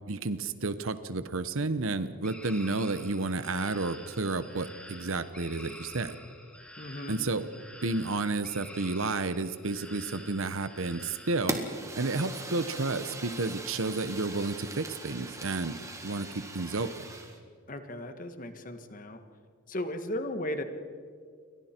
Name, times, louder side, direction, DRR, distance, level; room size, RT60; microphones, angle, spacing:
voice 1, 0.1-6.2 7.1-7.5 7.8-11.6 12.0-17.0, right 3 dB, 75° right, 13 dB, 1.0 m, -31 dB
sound 1, 2.2-11.5, left 1 dB, 5° left, 2.3 m, -48 dB
voice 2, 6.8-7.2 17.7-19.2 19.7-20.6, left 1 dB, 40° left, 8 dB, 1.6 m, -36 dB
Fire, 11.5-17.4, right 2 dB, 15° right, 1.8 m, -39 dB
29.5 x 24.0 x 4.5 m, 2.2 s
head